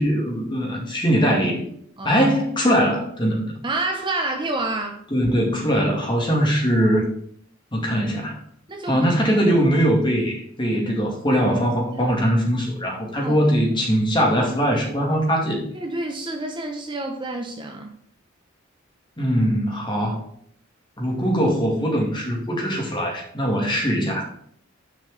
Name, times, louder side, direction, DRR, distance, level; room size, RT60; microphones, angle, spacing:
voice 1, 0.0-1.6 2.0-3.5 5.1-7.1 7.7-8.4 8.9-15.6 19.2-20.2 21.0-24.3, equal, 25° left, -1 dB, 2.3 m, -21 dB
voice 2, 3.6-5.0 6.7-6.8 8.7-9.1 10.9-11.0 11.9-12.2 13.2-13.5 13.9-14.0 15.5-17.9, right 2 dB, 25° right, 4 dB, 0.7 m, -29 dB
6.6 x 5.1 x 6.7 m, 0.64 s
head